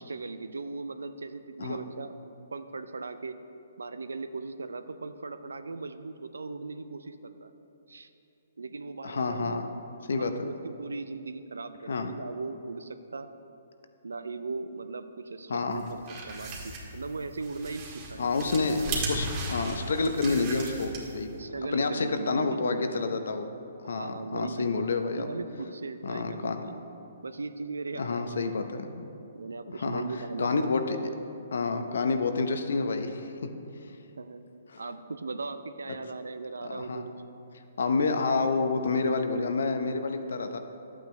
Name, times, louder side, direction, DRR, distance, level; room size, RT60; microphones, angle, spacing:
voice 1, 0.0-3.4 3.8-7.5 7.9-8.1 8.6-9.7 10.2-13.3 14.0-16.0 16.3-18.3 21.3-22.9 23.8-24.8 25.1-26.8 27.2-28.6 29.3-30.5 34.2-34.4 34.8-37.1, right 3 dB, 85° right, 10 dB, 0.5 m, -38 dB
voice 2, 9.0-9.7 10.1-10.3 11.9-12.1 15.5-15.9 18.2-21.3 21.7-23.5 23.9-25.3 26.0-26.6 28.0-29.1 29.7-30.0 30.4-31.0 31.5-33.5 34.7-34.8 36.6-37.1 37.8-40.6, left 4 dB, 75° left, 7 dB, 0.8 m, -29 dB
sound 1, 15.8-21.3, right 2 dB, 35° right, 1.9 m, -36 dB
11.5 x 8.6 x 3.2 m, 2.8 s
hypercardioid pair, 140°, 0 cm